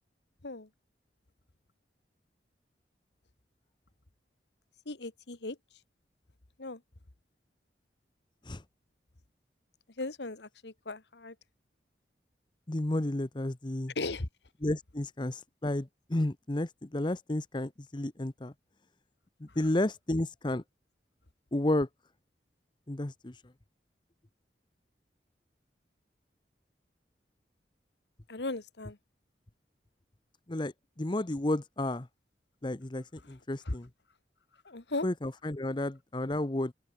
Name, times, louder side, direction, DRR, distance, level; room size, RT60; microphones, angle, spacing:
voice 1, 4.8-5.6 6.6-6.8 10.0-11.3 13.9-14.3 19.5-19.6 28.3-29.0 33.6-33.8 34.6-35.1, left 2 dB, 80° left, 1.6 m, -37 dB
voice 2, 12.7-13.9 14.6-18.5 19.4-20.6 21.5-21.9 22.9-23.3 30.5-32.1 32.6-33.9 35.0-36.7, left 1 dB, 25° left, 0.8 m, -32 dB
open air
head